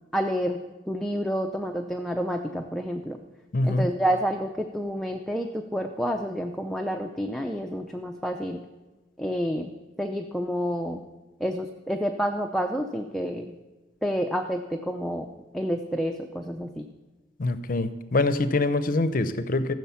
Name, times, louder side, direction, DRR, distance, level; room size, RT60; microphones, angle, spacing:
voice 1, 0.1-0.6 0.9-3.2 3.6-8.6 9.2-9.7 10.0-11.0 11.4-13.6 14.0-15.3 15.5-16.9, equal, ahead, 3 dB, 0.5 m, -29 dB
voice 2, 3.5-3.9 17.4-19.7, left 2 dB, 50° left, 12 dB, 0.6 m, -24 dB
15.0 x 6.5 x 7.0 m, 1.2 s
head